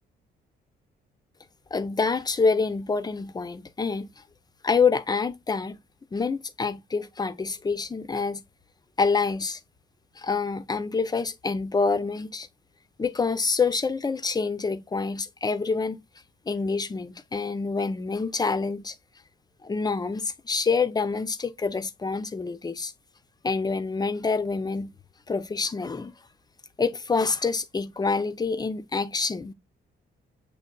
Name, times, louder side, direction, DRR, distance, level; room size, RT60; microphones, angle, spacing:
voice 1, 1.7-4.1 4.6-5.8 6.1-8.4 9.0-9.6 10.2-12.5 13.0-16.0 16.5-19.0 19.6-22.9 23.4-24.9 25.3-26.1 26.8-29.5, left 4 dB, 20° left, 0.5 m, -26 dB
6.5 x 3.1 x 2.2 m
cardioid pair, 90°, 20 cm